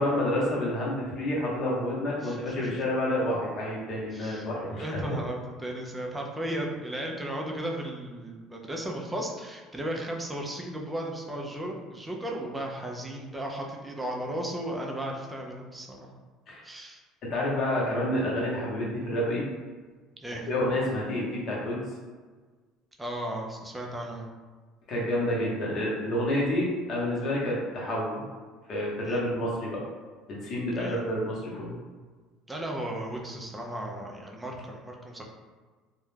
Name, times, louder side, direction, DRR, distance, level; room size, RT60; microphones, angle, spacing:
voice 1, 0.0-5.0 16.5-16.6 17.2-19.4 20.5-21.8 24.9-28.2 28.7-29.8 30.3-31.8, left 1 dB, 40° left, -4 dB, 0.8 m, -29 dB
voice 2, 2.2-2.7 4.1-16.1 16.6-17.0 20.2-20.5 23.0-24.3 29.0-29.3 30.7-31.0 32.5-35.2, right 1 dB, 10° right, 0 dB, 0.4 m, -35 dB
2.3 x 2.1 x 3.1 m, 1.4 s
cardioid pair, 145°, 0 cm